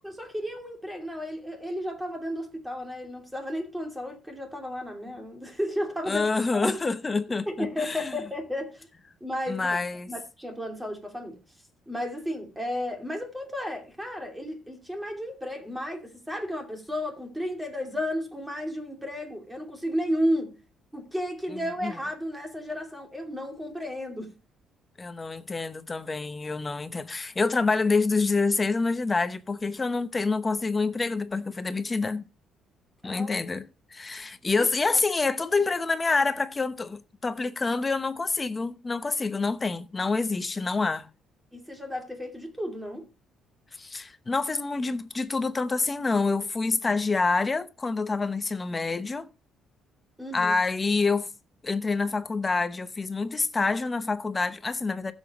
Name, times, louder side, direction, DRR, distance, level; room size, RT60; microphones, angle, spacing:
voice 1, 0.0-6.3 6.5-6.8 7.5-8.9 9.2-9.8 10.1-11.4 11.9-20.6 20.9-24.4 33.0-33.3 34.6-34.7 41.5-43.0 50.2-50.6, equal, 5° right, 2.7 m, -33 dB
voice 2, 6.1-8.2 9.5-10.1 21.8-21.9 25.0-32.2 33.0-41.1 43.8-49.3 50.3-51.3 51.6-55.1, left 3 dB, 20° left, 0.9 m, -27 dB
16.0 x 7.2 x 3.0 m
cardioid pair, 150°, 0 cm